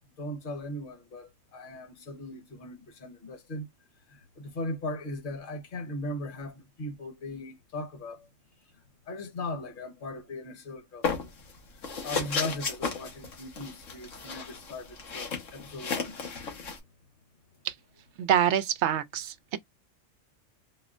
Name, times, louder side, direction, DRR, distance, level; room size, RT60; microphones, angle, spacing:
voice 1, 0.2-3.7 4.1-8.3 9.1-11.1 12.0-16.2, left 1 dB, 45° left, 1.2 m, -38 dB
sound 1, 11.0-11.5 11.8-16.8, left 5 dB, 75° left, 1.5 m, -34 dB
voice 2, 18.2-19.6, right 9 dB, 70° right, 0.8 m, -26 dB
4.1 x 2.1 x 2.4 m
omnidirectional pair, 1.3 m